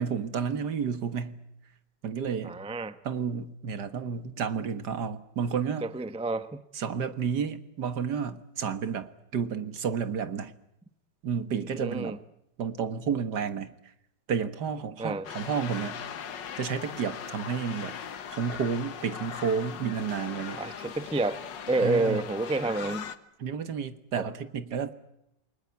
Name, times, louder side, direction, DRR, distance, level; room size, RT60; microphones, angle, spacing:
voice 1, 0.0-1.4 2.0-2.6 3.0-5.9 6.8-10.5 11.2-12.2 12.6-13.7 14.3-16.0 16.6-18.0 18.3-20.6 21.8-22.2 23.4-24.9, right 6 dB, 65° right, 11 dB, 2.0 m, -31 dB
voice 2, 2.4-3.0 5.8-6.6 11.7-12.2 15.0-15.3 20.6-23.1 24.2-24.3, right 2 dB, 5° right, 12 dB, 0.5 m, -29 dB
sound 1, 15.2-23.2, left 7 dB, 90° left, 2.0 m, -40 dB
28.5 x 20.0 x 9.5 m, 0.82 s
omnidirectional pair, 1.9 m